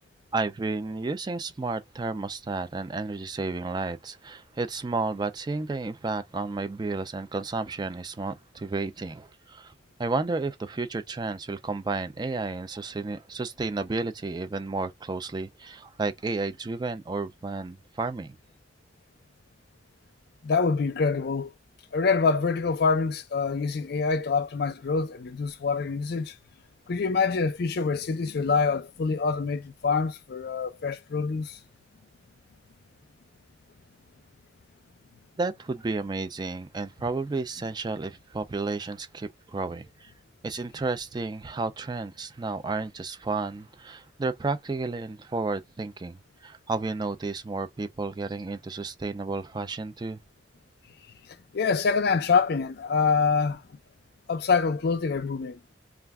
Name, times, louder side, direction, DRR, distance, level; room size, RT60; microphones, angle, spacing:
voice 1, 0.3-9.7 10.0-18.4 35.4-40.1 40.4-50.2, right 3 dB, 25° right, 0.4 m, -32 dB
voice 2, 20.4-21.5 21.9-26.3 26.9-31.5 51.5-53.6 54.3-55.6, left 5 dB, 60° left, 0.4 m, -25 dB
2.4 x 2.2 x 3.4 m
head